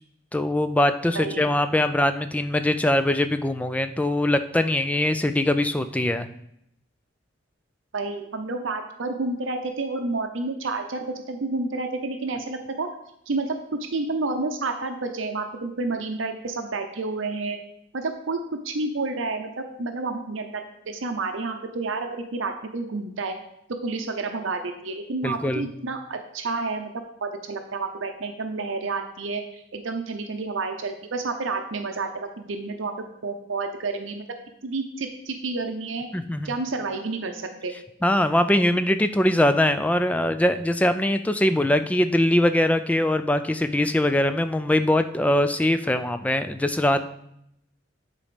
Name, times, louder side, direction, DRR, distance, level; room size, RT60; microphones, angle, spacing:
voice 1, 0.3-6.3 25.2-25.7 36.1-36.5 38.0-47.0, left 1 dB, 5° left, 10 dB, 0.3 m, -22 dB
voice 2, 1.1-1.5 7.9-12.9 13.3-13.6 13.9-17.6 17.9-18.4 18.6-20.6 20.9-23.3 23.8-34.2 34.6-36.1 36.4-37.7, right 3 dB, 75° right, 5 dB, 0.7 m, -30 dB
10.0 x 4.2 x 5.1 m, 0.77 s
head